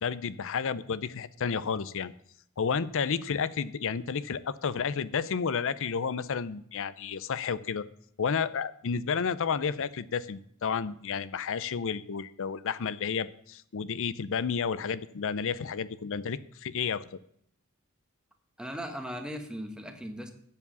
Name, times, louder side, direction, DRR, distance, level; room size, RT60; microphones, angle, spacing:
voice 1, 0.0-2.1 2.6-7.9 8.2-17.2, left 6 dB, 65° left, 17 dB, 0.6 m, -31 dB
voice 2, 18.6-20.3, equal, 5° right, 6 dB, 1.2 m, -38 dB
8.4 x 7.0 x 7.0 m, 0.68 s
head